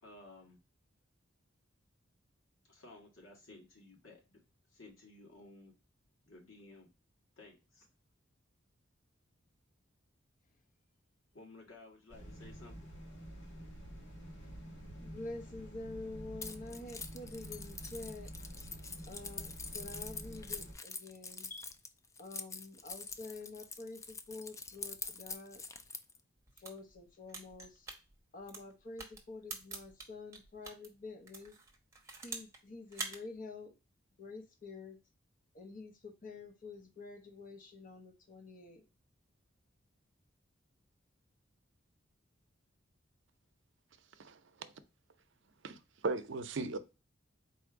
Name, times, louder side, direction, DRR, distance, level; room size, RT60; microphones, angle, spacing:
voice 1, 0.0-0.6 2.7-4.4 4.7-5.7 6.3-6.9 7.4-7.9 11.3-12.8, left 2 dB, 80° left, 1.6 m, -55 dB
sound 1, 12.1-20.7, equal, 65° left, 1.6 m, -49 dB
voice 2, 15.0-18.3 19.1-21.7 22.2-25.6 26.6-27.9 28.3-31.6 32.2-33.7 34.2-35.0 35.5-38.8, left 3 dB, 40° left, 0.7 m, -48 dB
Keys jangling, 16.4-26.2, left 4 dB, 15° left, 0.3 m, -45 dB
sound 2, 26.4-30.9 31.3-32.6 32.9-33.2, right 3 dB, 15° right, 1.0 m, -45 dB
voice 3, 44.2-44.7 45.6-46.8, right 3 dB, 65° right, 0.6 m, -38 dB
4.2 x 2.6 x 4.6 m
head